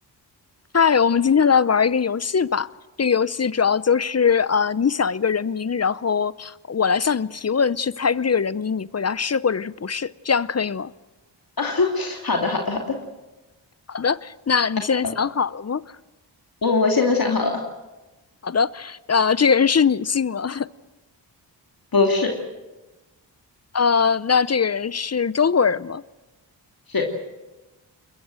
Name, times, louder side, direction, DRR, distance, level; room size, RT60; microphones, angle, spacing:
voice 1, 0.7-2.7 3.0-10.9 13.9-15.8 18.4-20.7 23.7-26.0, left 6 dB, 35° left, 0.7 m, -21 dB
voice 2, 11.6-13.0 15.0-15.1 16.6-17.7 21.9-22.4 26.9-27.1, left 3 dB, 50° left, 2.8 m, -21 dB
22.0 x 21.5 x 7.7 m
cardioid pair, 50°, 45 cm